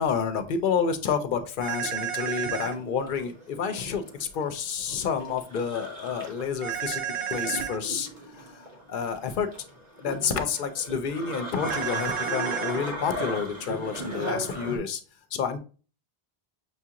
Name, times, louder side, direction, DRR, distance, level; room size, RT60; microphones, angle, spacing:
voice 1, 0.0-7.0 7.3-9.5 10.0-15.0 15.3-15.6, left 6 dB, 60° left, 8 dB, 0.7 m, -29 dB
sound 1, 1.6-14.8, right 1 dB, 45° right, 1.2 m, -37 dB
sound 2, 1.6-2.7 6.6-7.8 11.6-12.8, right 9 dB, 60° right, 0.7 m, -31 dB
6.1 x 2.4 x 2.8 m, 0.36 s
omnidirectional pair, 1.0 m